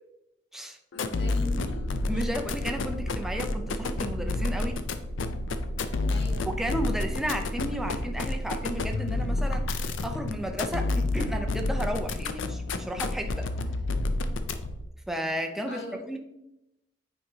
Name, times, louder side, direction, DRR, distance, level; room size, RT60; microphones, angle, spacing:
sound 1, 0.9-14.9, left 2 dB, 80° left, 0.5 m, -30 dB
voice 1, 0.9-2.2 6.1-6.5 15.7-16.0, left 2 dB, 65° left, 0 dB, 1.7 m, -40 dB
voice 2, 2.1-4.8 6.4-13.5 15.1-15.8 16.1-16.2, right 1 dB, ahead, 3 dB, 0.6 m, -33 dB
8.8 x 4.7 x 2.8 m, 0.86 s
head